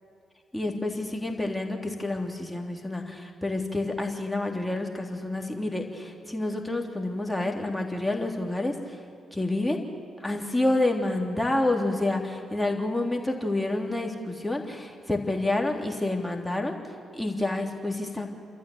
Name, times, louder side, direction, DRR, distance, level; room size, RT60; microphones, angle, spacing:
voice 1, 0.5-9.0 9.3-9.8 10.2-16.8 17.1-18.3, left 2 dB, 10° left, 1 dB, 3.2 m, -28 dB
29.5 x 13.5 x 8.0 m, 2.4 s
hypercardioid pair, 40°, 0 cm